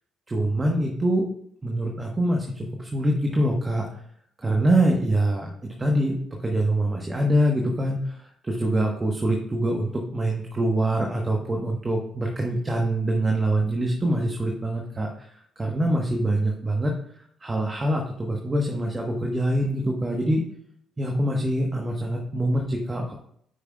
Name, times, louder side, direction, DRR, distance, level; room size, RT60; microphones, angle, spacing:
voice 1, 0.3-1.3 1.6-3.9 4.4-5.5 5.8-15.3 15.6-16.9 17.4-20.4 21.0-23.1, right 1 dB, 30° right, 1 dB, 1.2 m, -24 dB
7.9 x 5.9 x 2.3 m, 0.67 s
hypercardioid pair, 50°, 0 cm